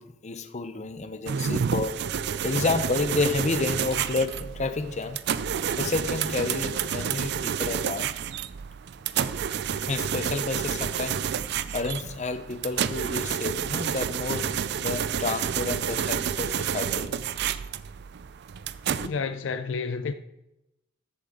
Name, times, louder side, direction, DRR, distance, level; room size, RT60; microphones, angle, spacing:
voice 1, 0.0-2.0 2.4-5.2 5.8-8.1 9.9-11.2 11.7-14.5 14.8-17.1, left 3 dB, 40° left, 0.8 m, -30 dB
sound 1, 1.3-19.1, right 8 dB, 60° right, 0.4 m, -29 dB
voice 2, 19.0-20.1, left 5 dB, 75° left, 0.5 m, -30 dB
14.0 x 7.5 x 3.7 m
head